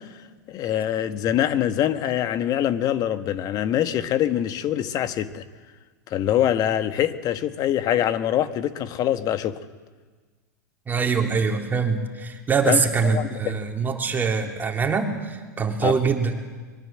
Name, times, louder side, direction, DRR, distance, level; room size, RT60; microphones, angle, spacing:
voice 1, 0.5-5.4 6.1-9.6 12.7-13.6 15.8-15.9, left 11 dB, 40° left, 10 dB, 1.5 m, -24 dB
voice 2, 10.9-16.4, right 5 dB, 20° right, 2 dB, 3.4 m, -24 dB
23.5 x 22.5 x 7.7 m, 1.4 s
hypercardioid pair, 95°, 10 cm